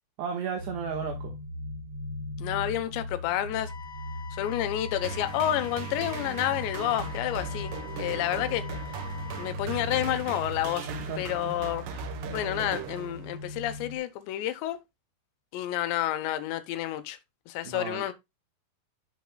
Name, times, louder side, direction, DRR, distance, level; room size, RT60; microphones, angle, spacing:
voice 1, 0.2-1.4 10.9-11.6 17.6-18.0, right 6 dB, 70° right, 3.1 m, -34 dB
sound 1, 0.6-14.0, left 2 dB, 35° right, 0.9 m, -39 dB
voice 2, 2.4-3.7 4.3-7.7 8.0-8.7 9.4-10.9 11.2-12.1 12.3-14.8 15.5-17.2 17.5-18.1, left 13 dB, 75° left, 2.9 m, -30 dB
sound 2, 3.7-9.5, left 8 dB, 40° left, 1.8 m, -45 dB
sound 3, 5.0-13.5, right 7 dB, 85° right, 1.9 m, -39 dB
12.5 x 6.1 x 2.2 m
omnidirectional pair, 5.6 m